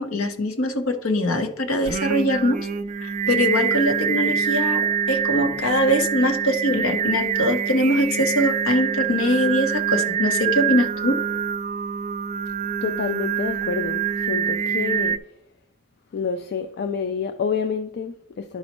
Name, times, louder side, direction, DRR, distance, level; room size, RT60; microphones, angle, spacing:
voice 1, 0.0-2.6 3.0-11.2, left 1 dB, 65° left, 0.8 m, -22 dB
Singing, 1.9-15.2, right 7 dB, 35° right, 0.3 m, -25 dB
voice 2, 12.8-15.2 16.1-18.6, left 5 dB, 50° left, 0.3 m, -28 dB
11.0 x 5.2 x 3.0 m
head